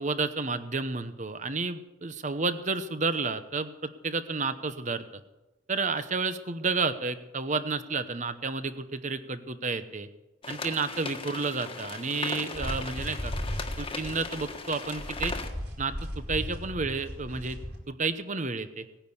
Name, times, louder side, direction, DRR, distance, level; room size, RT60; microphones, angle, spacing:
voice 1, 0.0-5.0 5.7-10.1 10.5-13.3 13.8-15.3 15.8-17.6 17.9-18.8, right 4 dB, 40° right, 11 dB, 1.0 m, -31 dB
sound 1, 10.4-15.5, left 4 dB, 30° left, 1.5 m, -38 dB
sound 2, 12.5-17.8, equal, 60° right, 4.7 m, -36 dB
18.5 x 10.0 x 7.1 m, 1.0 s
head